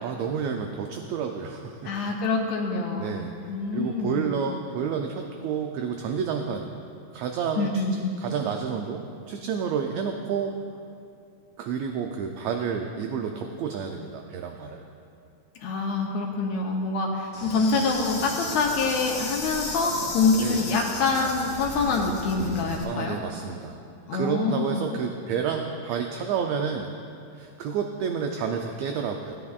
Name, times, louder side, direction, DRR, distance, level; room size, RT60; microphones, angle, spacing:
voice 1, 0.0-1.9 3.0-3.3 3.7-6.7 7.1-7.8 8.2-9.0 9.3-10.5 11.6-14.8 20.4-20.6 22.8-23.8 24.1-26.9 27.4-29.4, right 6 dB, 80° right, 3 dB, 1.6 m, -30 dB
voice 2, 1.8-3.2 3.5-4.3 7.6-8.2 15.6-23.2 24.1-24.9, left 4 dB, 75° left, -1 dB, 2.0 m, -26 dB
Insect, 17.3-22.8, left 2 dB, 30° left, 1.5 m, -34 dB
17.0 x 9.5 x 2.4 m, 2.6 s
omnidirectional pair, 3.3 m